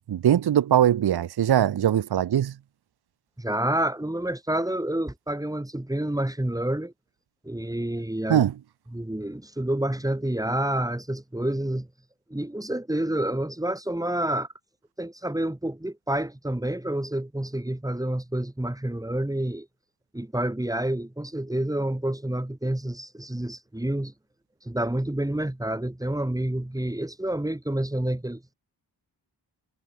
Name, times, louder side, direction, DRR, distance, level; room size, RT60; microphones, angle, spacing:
voice 1, 0.0-2.5 8.3-8.5, right 10 dB, 70° right, 0.7 m, -21 dB
voice 2, 3.4-6.9 7.4-8.4 8.9-11.9 12.3-14.5 15.0-19.7 20.1-24.1 24.7-28.5, right 1 dB, 10° right, 1.8 m, -28 dB
cardioid pair, 65°, 41 cm